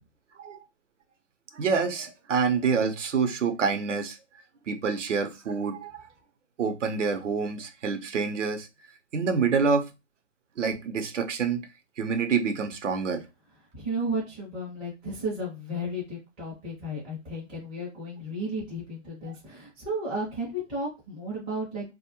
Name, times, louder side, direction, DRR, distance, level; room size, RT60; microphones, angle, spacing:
voice 1, 1.5-4.2 4.7-6.0 6.6-8.7 9.1-9.9 10.6-11.7 12.0-13.2, right 5 dB, 80° right, 0.7 m, -27 dB
voice 2, 13.7-21.9, right 1 dB, 10° right, 0.4 m, -33 dB
2.3 x 2.1 x 2.9 m
hypercardioid pair, 150°, 36 cm